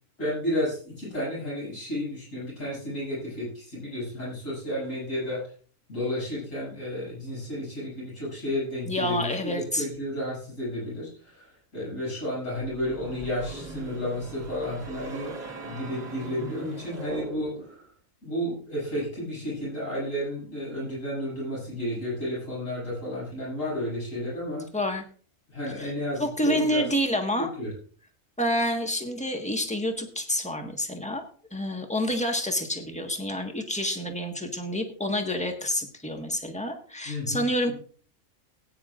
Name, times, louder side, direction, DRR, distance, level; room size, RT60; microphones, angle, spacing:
voice 1, 0.2-5.4 5.9-15.3 15.6-17.9 18.2-24.7 25.5-26.9 27.4-27.7 37.0-37.7, left 1 dB, 60° left, -7 dB, 8.0 m, -32 dB
voice 2, 8.9-9.9 24.7-25.0 25.8-25.9 26.2-27.5 28.4-31.2 31.5-37.7, equal, 5° left, 4 dB, 1.4 m, -28 dB
sound 1, 12.6-17.8, right 3 dB, 30° right, 1.7 m, -40 dB
18.5 x 9.6 x 2.5 m, 0.41 s
omnidirectional pair, 1.5 m